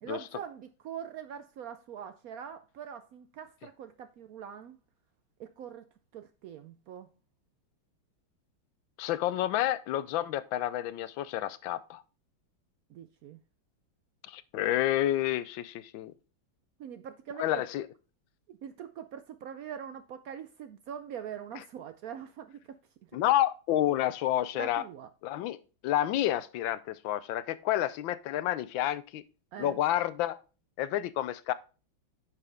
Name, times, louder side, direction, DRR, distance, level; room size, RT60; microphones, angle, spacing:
voice 1, 0.0-4.8 5.4-7.1 12.9-13.4 16.8-17.6 18.5-22.6 24.5-25.1 29.5-29.8, right 8 dB, 80° right, 0.7 m, -43 dB
voice 2, 9.0-12.0 14.3-16.1 17.4-17.9 23.1-24.8 25.2-25.6 25.8-29.2 29.6-30.4 30.8-31.5, left 13 dB, 80° left, 1.3 m, -29 dB
9.7 x 5.9 x 3.4 m
omnidirectional pair, 2.2 m